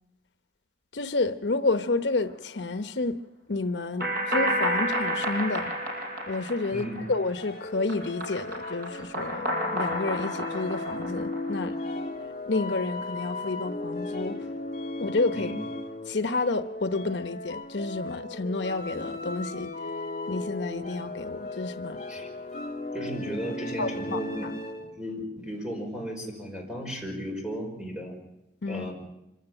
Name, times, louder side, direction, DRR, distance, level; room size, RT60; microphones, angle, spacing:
voice 1, 0.9-3.2 3.5-5.7 6.3-11.7 12.5-14.4 15.0-15.5 16.1-19.7 20.3-22.0 23.8-24.2 28.6-28.9, left 3 dB, 80° left, 10 dB, 0.9 m, -30 dB
sound 1, 4.0-7.4 7.7-11.7, equal, 50° right, 6.3 m, -30 dB
voice 2, 6.7-7.0 15.3-15.6 22.1-22.3 22.9-24.5 25.0-28.2 28.7-28.9, equal, 5° right, 0 dB, 5.2 m, -35 dB
sound 2, 7.3-25.0, left 2 dB, 40° left, 2.4 m, -36 dB
25.0 x 16.0 x 8.9 m, 0.90 s
head